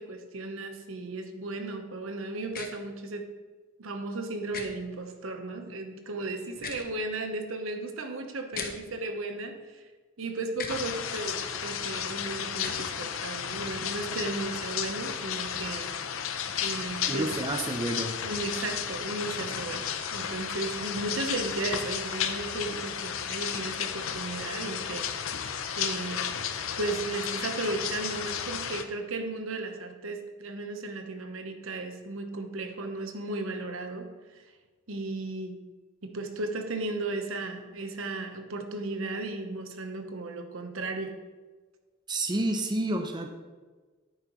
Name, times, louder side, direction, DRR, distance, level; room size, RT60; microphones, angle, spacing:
voice 1, 0.0-3.3 3.8-9.8 10.2-15.9 16.6-17.4 18.2-25.1 25.4-25.5 25.8-26.3 26.8-34.4 34.9-35.6 36.0-41.2, right 2 dB, 75° right, 6 dB, 1.0 m, -35 dB
sound 1, 2.5-2.7 4.5-4.7 6.5-6.9 8.5-8.7 10.5-10.8 12.5-12.8, left 6 dB, 45° left, 0.9 m, -37 dB
sound 2, 10.7-28.8, left 8 dB, 75° left, 0.7 m, -33 dB
voice 2, 17.1-18.1 42.1-43.3, right 2 dB, 20° right, 4 dB, 0.6 m, -29 dB
10.5 x 9.0 x 3.1 m, 1.3 s
head